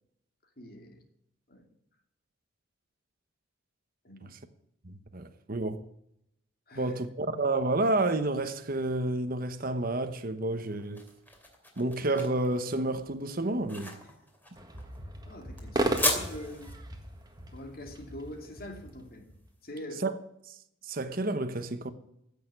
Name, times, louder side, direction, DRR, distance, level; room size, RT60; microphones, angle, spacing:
voice 1, 0.6-1.0 1.5-1.6 4.0-4.3 6.7-7.0 14.0-14.1 15.3-16.7 17.5-19.3 19.6-20.1, left 1 dB, 50° left, 2.5 m, -43 dB
voice 2, 4.8-5.8 6.8-11.1 11.8-14.0 20.0-20.1 20.5-20.6 20.8-21.9, right 2 dB, 45° right, 1.0 m, -30 dB
sound 1, 10.4-19.5, left 1 dB, 10° left, 2.7 m, -37 dB
sound 2, 14.6-19.4, right 1 dB, 20° right, 1.6 m, -36 dB
15.5 x 6.7 x 9.5 m
head